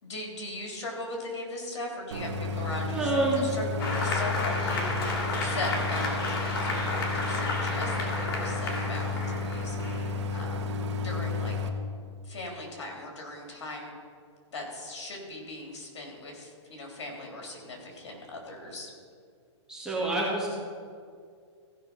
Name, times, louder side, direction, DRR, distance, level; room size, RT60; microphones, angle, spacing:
voice 1, 0.0-9.8 10.3-11.6 12.2-13.9 14.5-18.9, left 2 dB, 75° left, 0 dB, 3.4 m, -39 dB
Idling, 2.1-11.7, left 3 dB, 70° right, 1.3 m, -32 dB
voice 2, 2.9-3.5 19.7-20.5, right 2 dB, 5° right, -6 dB, 2.4 m, -27 dB
Applause, 3.8-11.0, left 2 dB, 55° left, 2.6 m, -32 dB
16.0 x 5.7 x 5.6 m, 2.2 s
hypercardioid pair, 155°, 15 cm